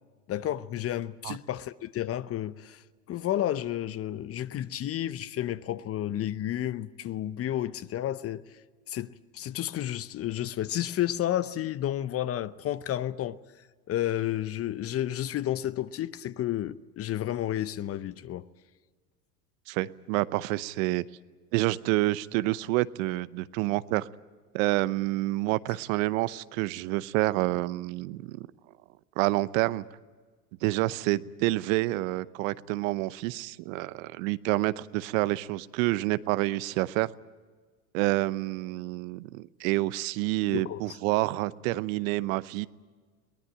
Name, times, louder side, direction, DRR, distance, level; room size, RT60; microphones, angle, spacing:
voice 1, 0.3-2.8 3.1-8.4 8.9-13.4 13.9-18.5 40.5-41.0, left 12 dB, 30° left, 0.7 m, -31 dB
voice 2, 19.7-21.0 21.5-24.1 24.5-28.5 29.2-29.8 30.6-37.1 37.9-42.7, right 19 dB, 60° right, 0.8 m, -28 dB
22.5 x 19.0 x 8.9 m
hypercardioid pair, 95°, 46 cm